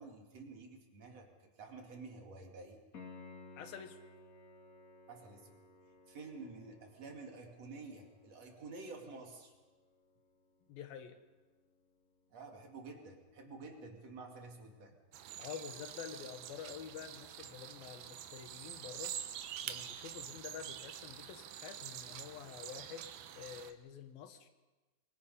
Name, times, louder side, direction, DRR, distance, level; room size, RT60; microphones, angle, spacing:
voice 1, 0.0-2.8 5.1-5.6 6.1-9.5 12.3-15.0, right 3 dB, 50° right, 2 dB, 3.3 m, -50 dB
Piano, 2.9-13.6 16.9-17.0, left 3 dB, 35° left, 1.4 m, -59 dB
voice 2, 3.6-4.0 10.7-11.2 15.4-19.2 19.7-24.5, left 8 dB, 85° left, 8 dB, 3.2 m, -48 dB
sound 1, 15.1-23.7, right 10 dB, 80° right, 2.9 m, -46 dB
24.5 x 23.5 x 5.5 m, 1.2 s
omnidirectional pair, 4.1 m